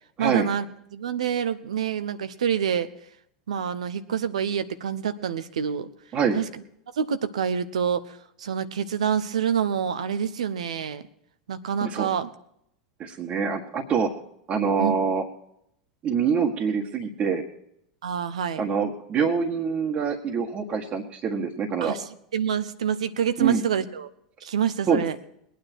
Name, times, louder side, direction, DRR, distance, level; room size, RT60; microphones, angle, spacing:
voice 1, 0.2-0.7 0.9-2.9 3.5-5.9 6.3-6.6 7.0-11.1 11.5-12.3 14.8-14.9 18.0-18.6 21.8-22.0 22.3-24.1 24.4-25.1, right 8 dB, 80° right, 13 dB, 0.9 m, -27 dB
voice 2, 11.8-12.2 13.0-14.1 14.5-15.2 16.0-17.4 18.6-22.0 23.4-23.6 24.9-25.0, right 6 dB, 40° right, 0 dB, 1.7 m, -25 dB
20.5 x 9.5 x 4.5 m, 0.73 s
hypercardioid pair, 90°, 3 cm